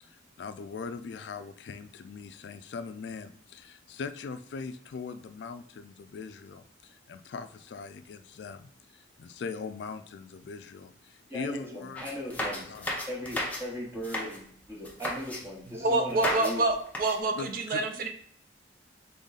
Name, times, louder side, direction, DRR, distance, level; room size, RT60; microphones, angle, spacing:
voice 1, 0.0-12.9 17.2-17.9, left 5 dB, 65° left, 10 dB, 0.3 m, -41 dB
voice 2, 11.3-12.7 13.1-16.6, equal, 15° right, -2 dB, 1.0 m, -38 dB
sound 1, 12.0-13.7 13.9-14.4 14.8-15.4 16.1-16.6 16.9-17.2, left 1 dB, 10° left, 0.6 m, -33 dB
voice 3, 15.7-18.1, right 2 dB, 50° right, 6 dB, 0.5 m, -27 dB
3.8 x 3.5 x 4.0 m, 0.65 s
head